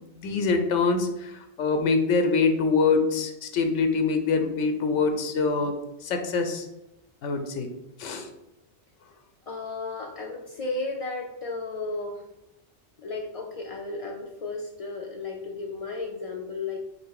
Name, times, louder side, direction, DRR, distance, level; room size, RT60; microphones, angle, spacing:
voice 1, 0.0-5.7 6.0-6.7 7.2-7.7 8.0-8.3, left 4 dB, 90° left, 6 dB, 0.9 m, -24 dB
voice 2, 9.5-12.2 13.0-16.8, left 3 dB, 65° left, 0 dB, 0.3 m, -34 dB
4.1 x 2.7 x 4.6 m, 0.89 s
omnidirectional pair, 1.2 m